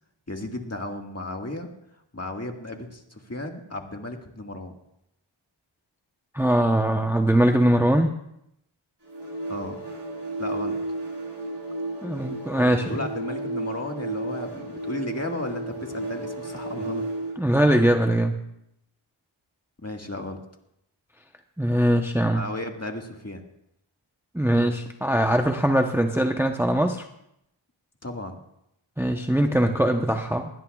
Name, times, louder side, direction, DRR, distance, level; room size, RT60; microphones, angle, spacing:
voice 1, 0.3-1.7 2.1-4.7 9.5-9.8 10.4-10.8 12.6-17.0 19.8-20.4 22.3-23.4 28.0-28.4, left 1 dB, 30° left, 2 dB, 1.8 m, -34 dB
voice 2, 6.3-8.1 12.0-12.9 17.4-18.4 21.6-22.4 24.3-27.1 29.0-30.5, right 1 dB, 5° right, 4 dB, 0.8 m, -21 dB
sound 1, 9.0-17.4, right 2 dB, 55° right, 6.8 m, -33 dB
20.0 x 17.0 x 2.4 m, 0.80 s
wide cardioid pair, 55°, 49 cm